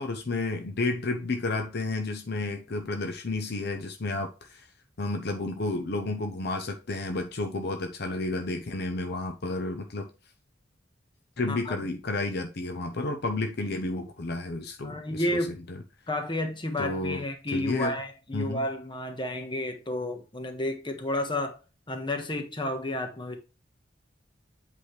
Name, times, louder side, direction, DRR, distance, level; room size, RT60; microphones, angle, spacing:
voice 1, 0.0-4.7 5.0-10.1 11.4-15.2 15.7-15.8 16.8-17.2 17.5-17.9 18.3-18.6, left 2 dB, 60° left, 0.7 m, -31 dB
voice 2, 14.8-15.6 16.1-21.6 21.9-23.4, left 1 dB, 25° left, 1.3 m, -31 dB
8.0 x 4.9 x 3.3 m
head